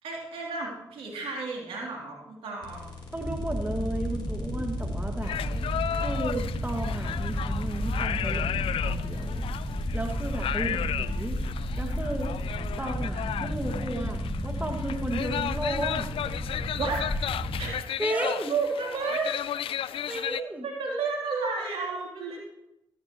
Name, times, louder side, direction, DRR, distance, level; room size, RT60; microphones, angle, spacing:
voice 1, 0.0-2.9 10.7-10.8 16.8-17.1 17.6-17.8 18.1-19.3 20.6-22.4, right 4 dB, 80° right, -2 dB, 3.3 m, -32 dB
sound 1, 2.6-16.4, left 1 dB, 50° left, 3.9 m, -44 dB
sound 2, 3.1-17.8, equal, 25° left, 1.8 m, -32 dB
voice 2, 3.1-5.4 6.0-9.4 9.9-11.4 11.8-12.3 12.8-16.1 18.0-18.5 20.1-20.7, right 1 dB, 15° right, 2 dB, 2.0 m, -34 dB
sound 3, 5.2-20.4, left 10 dB, 70° left, 0.4 m, -34 dB
14.5 x 12.5 x 3.1 m, 0.87 s
supercardioid pair, 45°, 10 cm